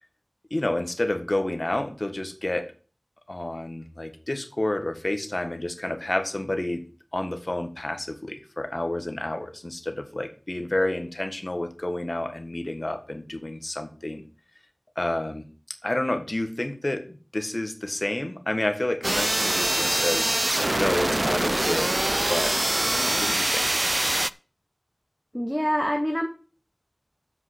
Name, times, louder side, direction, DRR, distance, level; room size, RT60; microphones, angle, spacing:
voice 1, 0.5-2.7 3.3-6.8 7.1-14.2 14.9-15.5 15.8-20.4 20.7-22.0 22.3-23.7, left 1 dB, 55° left, 8 dB, 1.5 m, -29 dB
sound 1, 19.0-24.3, right 1 dB, 45° right, 0.3 m, -24 dB
voice 2, 25.3-26.3, equal, 5° left, 4 dB, 1.2 m, -25 dB
7.8 x 5.8 x 7.8 m, 0.38 s
wide cardioid pair, 40°, 0 cm